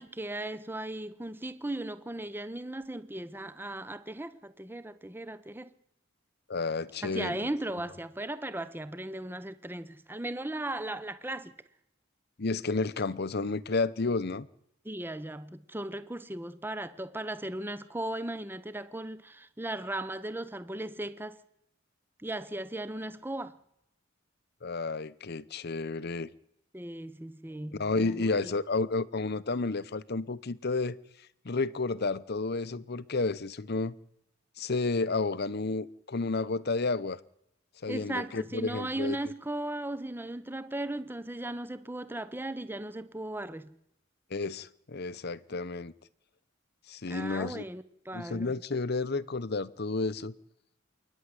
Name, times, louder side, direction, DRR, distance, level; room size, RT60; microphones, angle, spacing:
voice 1, 0.0-5.7 7.0-11.5 14.8-21.4 22.2-23.6 26.7-28.5 37.9-43.7 47.1-48.5, right 1 dB, 10° right, 0.8 m, -37 dB
voice 2, 6.5-7.4 12.4-14.5 24.6-26.3 27.7-31.0 31.4-33.9 34.6-37.2 37.8-39.2 44.3-45.9 46.9-47.6 48.1-50.3, left 3 dB, 55° left, 0.8 m, -31 dB
28.0 x 10.0 x 9.7 m
head